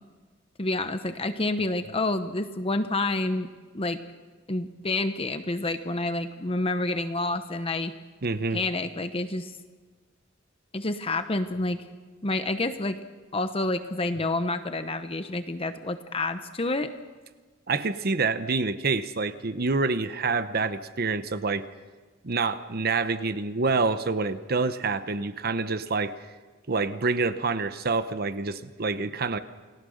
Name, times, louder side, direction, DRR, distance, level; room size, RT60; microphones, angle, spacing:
voice 1, 0.6-3.5 3.7-4.0 4.5-7.9 8.5-9.6 10.7-11.8 12.2-13.0 13.3-16.9, left 2 dB, 30° left, 9 dB, 1.0 m, -28 dB
voice 2, 8.2-8.6 17.7-21.6 22.2-26.1 26.7-29.4, right 4 dB, 55° right, 11 dB, 0.9 m, -27 dB
29.0 x 19.5 x 6.5 m, 1.4 s
head